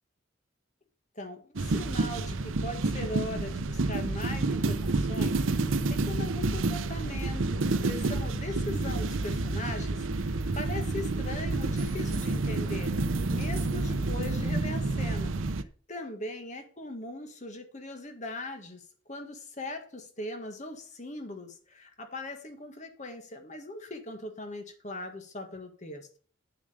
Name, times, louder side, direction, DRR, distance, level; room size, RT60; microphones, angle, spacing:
voice 1, 1.2-26.1, left 2 dB, 35° left, 1.7 m, -40 dB
sound 1, 1.6-15.6, right 3 dB, 75° right, 0.7 m, -29 dB
7.8 x 7.1 x 5.1 m
head